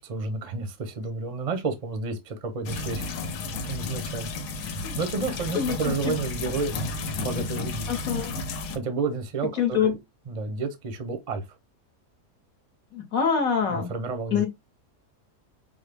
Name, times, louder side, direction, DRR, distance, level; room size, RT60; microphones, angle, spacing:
voice 1, 0.0-3.1 3.5-4.3 4.7-6.8 7.2-7.8 8.7-10.0 10.3-11.4 13.7-14.4, right 4 dB, 40° right, 0.5 m, -31 dB
sound 1, 2.7-8.8, left 3 dB, 80° left, 1.3 m, -32 dB
voice 2, 5.5-6.2 7.9-8.3 9.6-9.9 12.9-13.9 14.3-14.5, left 7 dB, 65° left, 1.2 m, -25 dB
5.5 x 2.0 x 3.3 m
omnidirectional pair, 1.7 m